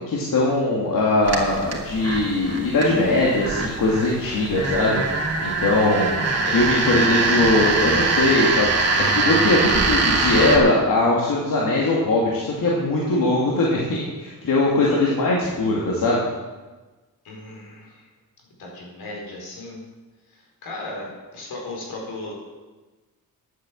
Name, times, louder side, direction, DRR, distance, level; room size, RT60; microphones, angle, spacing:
voice 1, 0.0-5.0 5.4-6.1 6.5-16.3, left 2 dB, 65° left, -4 dB, 2.5 m, -21 dB
sound 1, 1.2-10.6, right 3 dB, 45° right, 2.6 m, -23 dB
voice 2, 4.2-4.6 5.8-8.1 14.9-15.2 17.2-18.1 18.6-19.8 20.3-22.3, left 2 dB, 80° left, -1 dB, 4.6 m, -36 dB
11.0 x 8.8 x 7.5 m, 1.2 s
cardioid pair, 105°, 36 cm